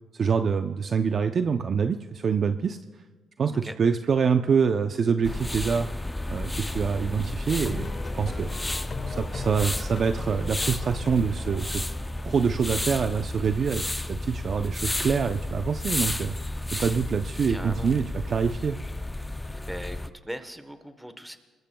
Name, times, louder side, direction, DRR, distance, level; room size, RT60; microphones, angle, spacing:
voice 1, 0.1-2.8 3.4-5.9 6.3-8.5 9.1-11.8 12.2-13.8 14.1-16.3 16.7-18.8, right 6 dB, 50° right, 8 dB, 0.6 m, -25 dB
sound 1, 5.2-20.1, left 1 dB, 10° left, 0.5 m, -32 dB
sound 2, 7.5-12.6, left 5 dB, 40° left, 1.2 m, -41 dB
voice 2, 17.5-17.9 19.5-21.4, equal, 5° right, 8 dB, 1.1 m, -39 dB
28.0 x 21.0 x 2.3 m, 1.4 s
cardioid pair, 90°, 0 cm